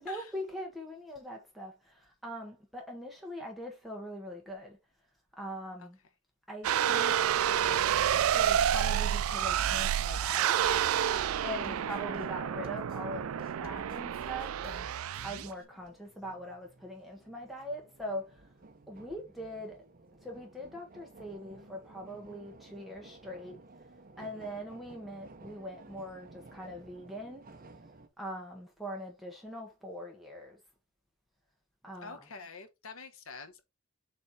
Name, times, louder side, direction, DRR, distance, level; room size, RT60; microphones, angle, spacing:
voice 1, 0.0-4.8 5.4-6.0 6.5-7.2 8.3-10.6 11.4-18.5 18.9-19.8 20.2-23.6 24.2-27.4 28.2-30.6 31.8-32.3, equal, ahead, 1.5 m, -42 dB
sound 1, 6.6-15.5, right 10 dB, 75° right, 0.3 m, -29 dB
sound 2, 7.6-15.6, right 1 dB, 40° left, 2.0 m, -53 dB
voice 2, 11.5-11.9 24.2-24.5 32.0-33.6, left 4 dB, 75° left, 1.1 m, -47 dB
sound 3, 13.5-28.1, right 2 dB, 40° right, 0.8 m, -55 dB
7.1 x 3.4 x 4.2 m
head